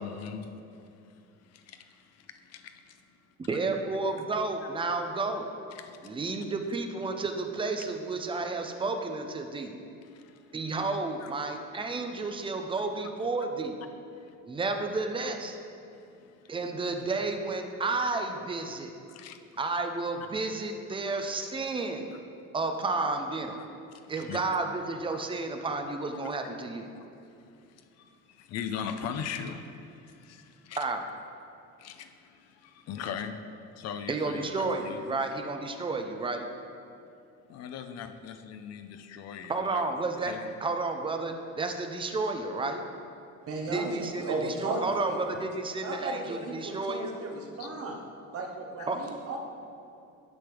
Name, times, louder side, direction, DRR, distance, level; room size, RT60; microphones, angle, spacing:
voice 1, 0.0-3.0 4.1-4.2 4.6-4.7 5.7-6.2 10.0-10.6 11.2-11.3 14.1-14.4 15.9-16.5 19.1-19.4 21.0-21.2 23.9-24.5 27.3-30.9 31.8-33.3 33.8-35.2 37.5-39.8 40.2-40.5 47.6-47.7, left 7 dB, 55° left, 8 dB, 0.6 m, -41 dB
voice 2, 3.5-5.5 6.0-9.7 10.5-13.8 14.5-15.6 16.5-18.9 19.6-22.1 22.5-23.6 24.1-26.9 30.8-31.0 34.1-36.5 39.5-40.3 40.6-42.8 43.7-47.2 48.9-49.0, right 3 dB, 15° right, 5 dB, 0.5 m, -31 dB
voice 3, 43.5-45.2 45.8-48.0 48.3-49.4, right 3 dB, 50° right, 1 dB, 1.1 m, -35 dB
9.9 x 6.1 x 3.4 m, 2.6 s
cardioid pair, 150°, 30 cm